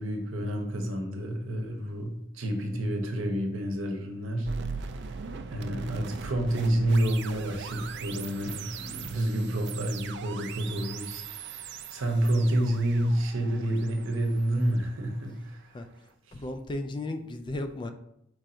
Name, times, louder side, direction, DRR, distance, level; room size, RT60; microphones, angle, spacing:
voice 1, 0.0-4.5 4.8-4.9 5.5-15.6, right 1 dB, 75° right, 3 dB, 0.8 m, -29 dB
sound 1, 4.5-15.5, right 5 dB, 60° right, 0.3 m, -40 dB
voice 2, 15.7-17.9, left 1 dB, 25° left, 8 dB, 0.3 m, -36 dB
4.6 x 2.5 x 4.3 m, 0.76 s
head